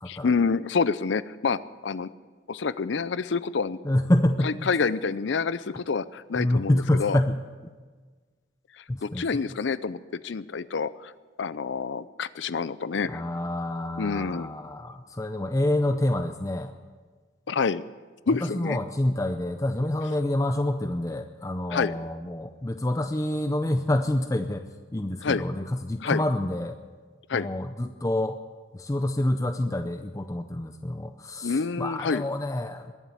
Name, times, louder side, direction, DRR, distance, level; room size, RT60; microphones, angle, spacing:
voice 1, 0.1-2.1 2.5-3.8 4.4-7.2 8.8-10.0 10.2-11.1 11.4-13.2 14.0-14.5 17.5-17.8 18.3-18.8 21.7-21.9 25.2-25.4 26.0-26.2 27.3-27.5 31.4-32.2, left 5 dB, 65° left, 16 dB, 0.5 m, -27 dB
voice 2, 3.8-4.5 6.3-7.4 8.9-9.2 13.1-16.7 18.4-24.6 24.9-26.8 27.3-28.4 28.7-32.9, left 1 dB, 15° left, 7 dB, 0.5 m, -27 dB
21.5 x 7.4 x 8.3 m, 1.4 s
head